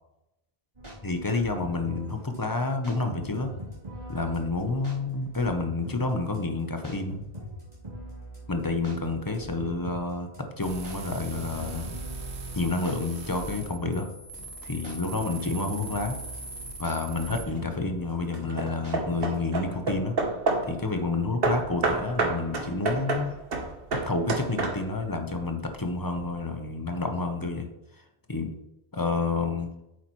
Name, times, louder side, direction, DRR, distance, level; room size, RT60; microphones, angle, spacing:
sound 1, 0.7-19.4, right 1 dB, 35° right, 3.3 m, -43 dB
voice 1, 1.0-3.5 4.1-7.2 8.5-10.3 10.6-11.9 12.5-14.1 14.6-16.2 16.8-20.2 20.6-23.3 23.9-27.7 28.0-28.1 28.3-28.5 28.9-29.7, left 3 dB, 20° left, 5 dB, 0.9 m, -29 dB
sound 2, 10.6-17.4, right 3 dB, 80° right, 1.4 m, -40 dB
Hammer / Wood, 17.2-17.7 18.3-20.8 21.4-25.1, right 3 dB, 60° right, 1.3 m, -29 dB
8.6 x 7.3 x 3.1 m, 0.87 s
omnidirectional pair, 1.1 m